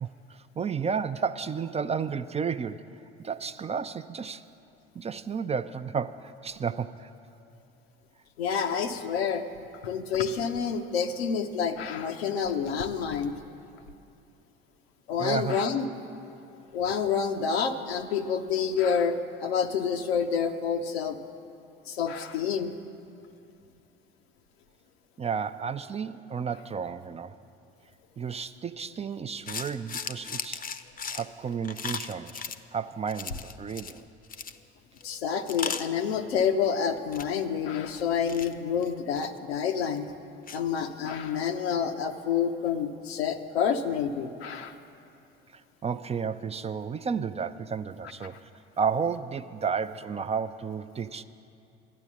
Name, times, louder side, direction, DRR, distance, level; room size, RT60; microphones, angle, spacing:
voice 1, 0.0-2.9 3.2-4.4 4.9-7.1 15.2-15.6 25.2-27.4 28.2-30.6 31.1-32.4 32.7-34.1 45.5-48.5 48.8-51.2, right 6 dB, 20° right, 11 dB, 0.4 m, -32 dB
voice 2, 8.4-9.4 9.8-13.3 15.1-15.9 16.7-21.2 21.9-22.7 35.0-40.1 40.5-44.7, left 7 dB, 80° left, 6 dB, 0.8 m, -28 dB
sound 1, 29.5-32.6 33.1-34.0 34.2-34.6 35.0-35.1 35.5-36.7 37.0-37.3 37.9-39.6 40.0-40.1 40.5-40.6, left 6 dB, 30° left, 0.6 m, -37 dB
12.5 x 9.7 x 7.3 m, 2.6 s
hypercardioid pair, 60°, 31 cm